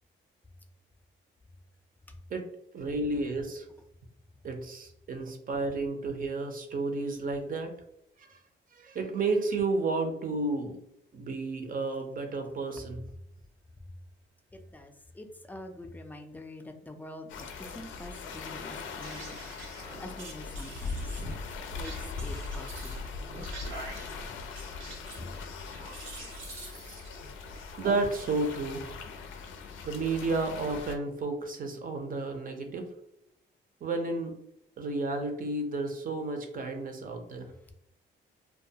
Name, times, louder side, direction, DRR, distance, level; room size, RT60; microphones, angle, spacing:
voice 1, 2.7-3.7 4.4-7.7 8.2-8.4 8.7-10.8 11.1-13.0 27.8-29.0 29.8-32.8 33.8-34.4 34.8-37.5, right 3 dB, 45° right, 0.6 m, -32 dB
voice 2, 14.5-19.4 20.0-21.1 21.7-23.0 25.2-25.3, left 1 dB, 10° left, 0.4 m, -45 dB
sound 1, 17.3-31.0, left 4 dB, 80° left, 0.4 m, -40 dB
sound 2, 19.0-28.0, right 2 dB, 75° right, 0.9 m, -46 dB
2.3 x 2.2 x 2.7 m
cardioid pair, 90°, 20 cm